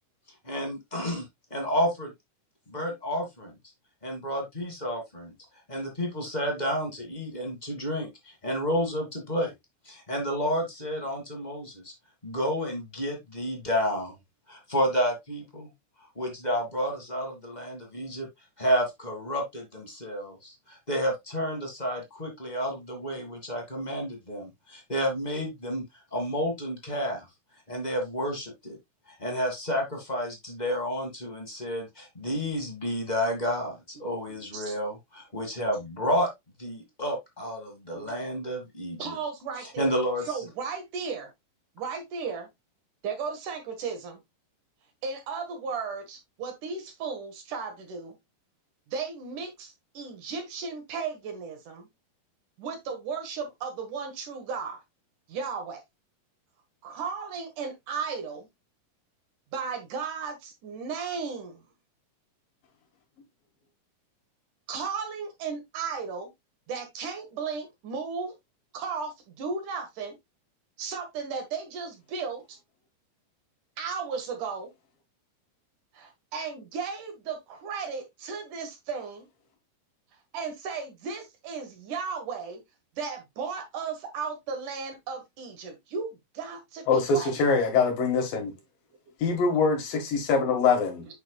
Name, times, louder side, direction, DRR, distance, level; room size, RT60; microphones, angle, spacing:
voice 1, 0.4-1.2 1.5-2.1 2.7-3.5 4.0-5.3 5.7-9.5 9.8-11.9 12.2-14.1 14.5-15.7 16.1-18.3 18.6-25.8 26.1-27.2 27.7-28.8 29.2-36.3 36.6-39.2 39.6-40.3, equal, 20° left, 1.4 m, -30 dB
voice 2, 34.3-34.7 37.9-38.2 39.0-39.9 40.3-41.3 41.8-42.5 43.0-44.2 45.0-48.2 48.9-51.9 52.6-54.8 55.3-55.8 56.8-58.5 59.5-61.6 64.7-66.3 66.7-68.3 68.7-70.2 70.8-72.6 73.8-74.7 75.9-79.3 80.3-82.6 83.0-87.4, right 5 dB, 65° right, 3.0 m, -35 dB
voice 3, 86.9-88.5 89.2-91.1, left 4 dB, 80° left, 3.5 m, -24 dB
8.1 x 5.7 x 2.3 m
omnidirectional pair, 3.9 m